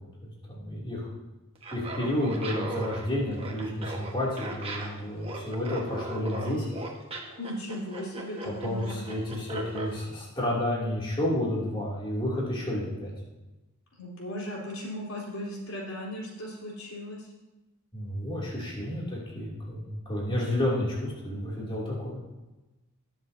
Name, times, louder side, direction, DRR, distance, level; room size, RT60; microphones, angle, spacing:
voice 1, 0.2-1.1 1.7-6.7 8.6-13.1 17.9-22.2, left 1 dB, 25° left, -6 dB, 2.8 m, -31 dB
Laughter, 1.5-9.9, right 2 dB, 25° right, 1.4 m, -38 dB
voice 2, 7.4-9.1 14.0-17.3, left 1 dB, 85° left, -4 dB, 3.7 m, -37 dB
19.0 x 7.6 x 2.8 m, 1.1 s
head